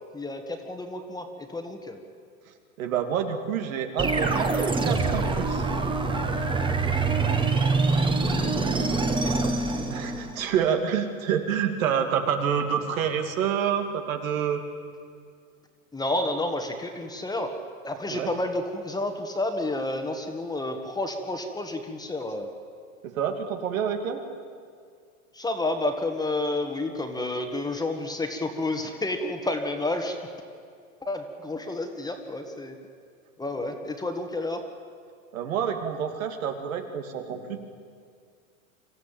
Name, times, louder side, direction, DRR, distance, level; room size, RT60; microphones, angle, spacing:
voice 1, 0.1-2.0 8.4-9.3 15.9-17.6 17.8-22.5 25.3-30.3 31.0-32.8 33.4-34.6, left 2 dB, 10° left, 5 dB, 1.7 m, -30 dB
voice 2, 2.8-5.7 9.9-14.6 18.1-18.3 23.0-24.2 35.3-37.6, right 8 dB, 70° right, 5 dB, 2.6 m, -28 dB
sound 1, 4.0-10.4, right 3 dB, 10° right, 1.6 m, -25 dB
25.5 x 14.5 x 9.0 m, 2.1 s
hypercardioid pair, 115°, 42 cm